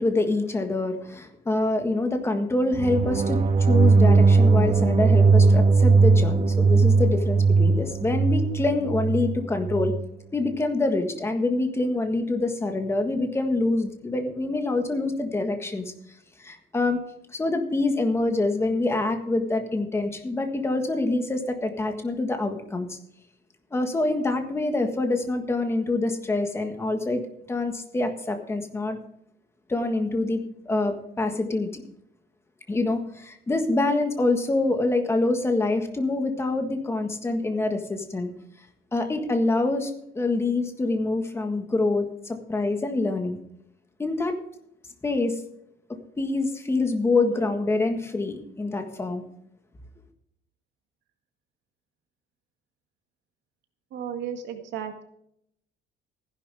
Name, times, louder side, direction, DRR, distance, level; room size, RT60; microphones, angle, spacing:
voice 1, 0.0-3.4 3.7-9.9 10.3-15.9 16.4-17.0 17.3-23.0 23.7-27.2 27.5-29.0 29.7-31.8 32.7-38.3 38.9-39.9 40.1-43.4 44.0-44.4 45.0-45.4 46.2-49.2, left 2 dB, 10° left, 6 dB, 1.6 m, -26 dB
sound 1, 2.7-10.0, right 4 dB, 30° right, 0.8 m, -19 dB
voice 2, 53.9-55.0, right 8 dB, 65° right, 6 dB, 2.0 m, -34 dB
15.0 x 11.0 x 3.5 m, 0.73 s
cardioid pair, 180°, 20 cm